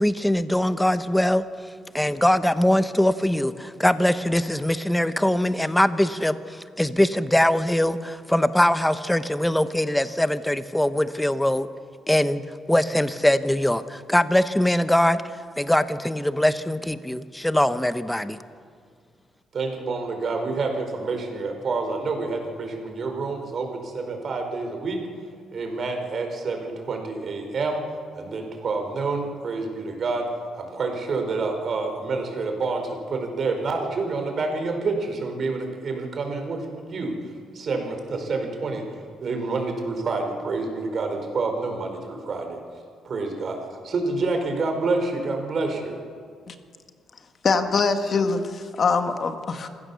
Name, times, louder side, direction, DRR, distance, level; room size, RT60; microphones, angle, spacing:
voice 1, 0.0-1.4 1.9-11.7 12.1-12.4 12.7-18.4, left 1 dB, 5° left, 12 dB, 1.0 m, -22 dB
voice 2, 19.5-25.0 25.5-27.8 28.2-37.1 37.5-38.8 39.2-42.6 43.0-46.0, right 3 dB, 50° right, 4 dB, 4.4 m, -28 dB
voice 3, 47.4-49.7, left 4 dB, 45° left, 7 dB, 1.7 m, -23 dB
27.0 x 15.5 x 7.0 m, 2.1 s
cardioid pair, 90°, 0 cm